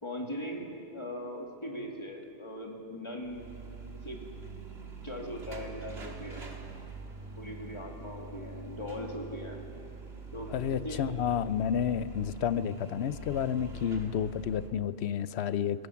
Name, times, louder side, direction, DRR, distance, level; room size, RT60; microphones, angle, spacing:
voice 1, 0.0-3.4 4.0-4.2 5.0-6.6 7.3-9.6 10.3-11.0, equal, 25° left, 0 dB, 2.3 m, -40 dB
sound 1, 3.2-14.7, right 4 dB, 75° right, 2.0 m, -44 dB
voice 2, 10.5-15.9, left 8 dB, 80° left, 15 dB, 0.9 m, -30 dB
24.0 x 16.0 x 7.1 m, 2.6 s
omnidirectional pair, 1.1 m